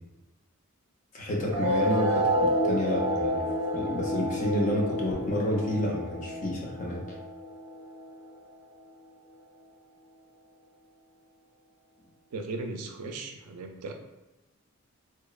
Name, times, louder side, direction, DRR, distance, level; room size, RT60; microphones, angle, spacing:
voice 1, 1.1-3.5 3.7-7.2, left 1 dB, 35° left, -2 dB, 0.4 m, -29 dB
sound 1, 1.5-8.5, equal, 30° right, 0.8 m, -29 dB
voice 2, 12.3-13.9, right 3 dB, 90° right, 4 dB, 0.4 m, -37 dB
2.8 x 2.0 x 2.3 m, 1.0 s
head